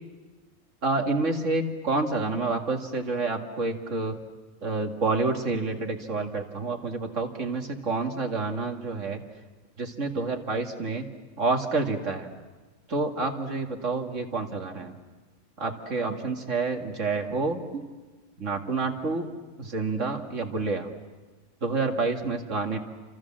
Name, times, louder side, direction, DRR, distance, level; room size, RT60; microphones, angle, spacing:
voice 1, 0.8-4.2 4.6-9.2 9.8-11.1 11.4-12.3 12.9-15.0 15.6-17.8 18.4-19.3 19.6-20.9 21.6-22.8, right 3 dB, 75° right, 3 dB, 2.5 m, -28 dB
29.5 x 26.5 x 7.5 m, 1.3 s
omnidirectional pair, 1.3 m